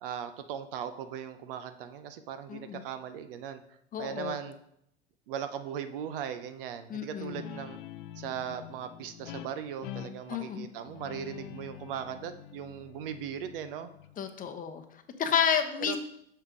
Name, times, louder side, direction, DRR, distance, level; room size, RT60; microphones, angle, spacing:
voice 1, 0.0-3.6 4.0-4.6 5.3-7.8 8.2-13.9 15.8-16.0, right 8 dB, 60° right, 10 dB, 0.7 m, -38 dB
voice 2, 2.5-2.8 3.9-4.4 6.9-7.4 10.3-10.7 14.2-14.8 15.2-16.0, left 8 dB, 25° left, 7 dB, 0.8 m, -30 dB
Guitar, 7.3-14.5, left 11 dB, 55° left, 0.5 m, -46 dB
6.6 x 5.4 x 3.6 m, 0.73 s
hypercardioid pair, 90°, 31 cm